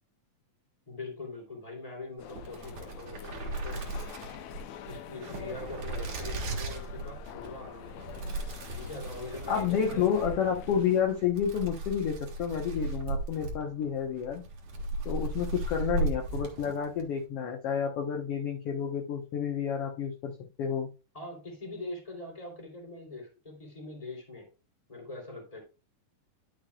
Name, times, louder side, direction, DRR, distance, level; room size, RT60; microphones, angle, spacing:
voice 1, 0.9-3.8 4.8-8.1 8.7-10.1 21.1-24.5 24.9-25.6, left 2 dB, 10° left, 0 dB, 3.1 m, -42 dB
sound 1, 2.2-11.0, left 9 dB, 80° left, 1.5 m, -46 dB
sound 2, 2.2-17.1, right 3 dB, 60° right, 2.9 m, -37 dB
voice 2, 9.5-14.4 15.0-20.3 20.6-20.9, left 8 dB, 60° left, 3 dB, 1.7 m, -30 dB
11.5 x 6.7 x 2.4 m, 0.31 s
omnidirectional pair, 3.9 m